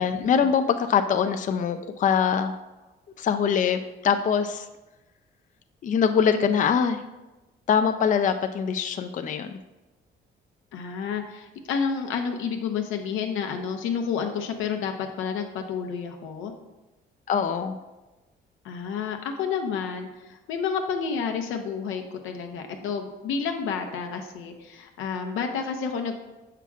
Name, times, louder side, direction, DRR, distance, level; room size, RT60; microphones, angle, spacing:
voice 1, 0.0-2.6 3.2-4.7 5.8-7.0 7.7-9.6 17.3-17.8, left 7 dB, 40° left, 8 dB, 0.4 m, -23 dB
voice 2, 10.7-16.5 18.6-26.2, left 6 dB, 90° left, 4 dB, 0.7 m, -30 dB
7.1 x 5.7 x 2.4 m, 1.1 s
cardioid pair, 90°, 20 cm